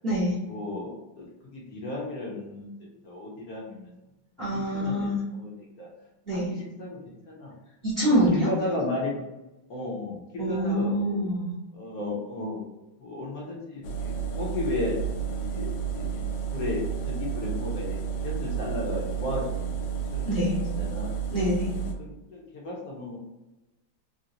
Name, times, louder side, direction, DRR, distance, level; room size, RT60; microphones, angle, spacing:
voice 1, 0.4-1.3 1.5-2.8 3.0-3.9 4.4-5.9 6.3-7.0 7.3-7.5 8.0-9.2 9.7-11.2 11.7-12.6 13.0-15.0 15.3-16.1 16.5-18.0 18.2-19.7 20.1-20.4 20.8-21.1 21.7-23.2, left 2 dB, 60° left, -3 dB, 1.0 m, -34 dB
voice 2, 4.4-5.2 6.3-6.5 7.8-8.5 10.4-11.5 20.3-20.6 21.3-21.7, equal, 40° right, -9 dB, 0.9 m, -25 dB
sound 1, 13.8-21.9, right 7 dB, 80° left, 1.3 m, -31 dB
3.8 x 2.2 x 2.7 m, 1.0 s
omnidirectional pair, 2.3 m